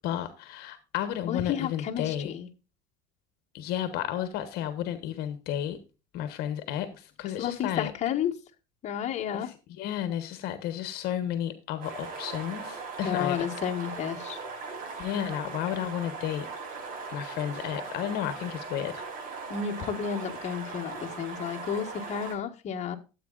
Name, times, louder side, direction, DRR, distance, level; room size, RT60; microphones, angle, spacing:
voice 1, 0.0-2.3 3.5-5.8 6.1-7.9 9.3-13.4 15.0-16.5 17.1-19.1, left 11 dB, 65° left, 1.3 m, -32 dB
voice 2, 1.3-2.5 7.4-8.3 8.8-9.5 13.0-14.4 19.5-23.0, left 8 dB, 40° left, 1.6 m, -31 dB
sound 1, 11.8-22.3, right 4 dB, 50° right, 5.6 m, -39 dB
13.5 x 8.3 x 2.5 m
cardioid pair, 125°, 18 cm